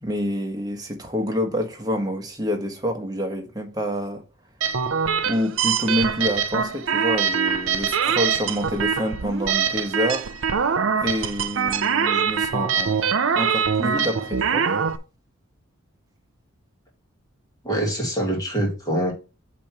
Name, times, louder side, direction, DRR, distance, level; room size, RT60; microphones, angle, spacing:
voice 1, 0.0-4.2 5.2-10.3 11.0-13.0 13.4-14.7, equal, 20° right, 1.3 m, -27 dB
sound 1, 4.6-15.0, right 6 dB, 70° right, 0.6 m, -23 dB
voice 2, 17.6-19.1, right 1 dB, 15° left, 2.1 m, -24 dB
8.5 x 3.1 x 5.8 m
head